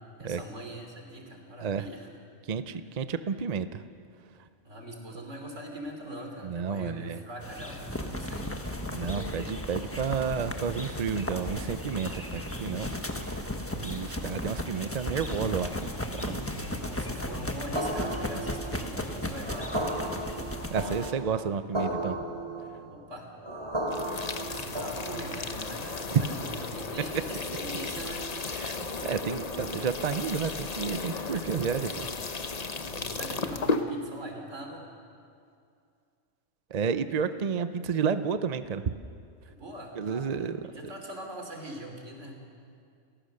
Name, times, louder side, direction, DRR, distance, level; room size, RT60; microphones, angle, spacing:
voice 1, 0.0-2.1 4.6-8.5 14.5-14.8 16.4-19.8 22.8-23.3 24.5-28.3 31.3-31.5 32.8-34.9 39.5-42.4, right 1 dB, 75° right, 2 dB, 3.5 m, -42 dB
voice 2, 2.5-3.8 6.4-7.2 8.9-13.4 13.7-15.9 16.1-16.5 20.7-22.2 26.1-26.2 28.5-32.1 36.7-38.9 39.9-40.6, right 6 dB, 40° right, 11 dB, 0.6 m, -31 dB
sound 1, 7.4-21.1, left 1 dB, 10° left, 1.2 m, -35 dB
sound 2, 17.8-25.6, right 1 dB, 20° right, 3.6 m, -35 dB
sound 3, 23.9-33.8, left 4 dB, 35° left, 1.0 m, -34 dB
30.0 x 15.0 x 6.6 m, 2.4 s
omnidirectional pair, 1.3 m